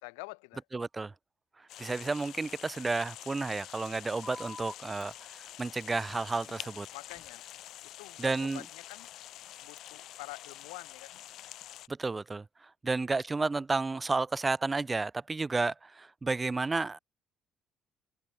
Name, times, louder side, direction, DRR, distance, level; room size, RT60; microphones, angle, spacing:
voice 1, 0.0-0.6 6.6-7.5 7.8-9.1 9.6-11.2, left 35 dB, 85° left, 0.4 m, -47 dB
voice 2, 0.7-1.1 1.8-6.9 8.2-8.6 11.9-17.0, right 3 dB, 25° right, 0.7 m, -32 dB
sound 1, 1.7-11.9, left 13 dB, 70° left, 2.1 m, -47 dB
sound 2, 2.4-2.5 2.8-2.9 4.2-4.7 5.9-6.4 7.1-7.3, left 3 dB, 25° left, 0.8 m, -47 dB
hypercardioid pair, 60°, 0 cm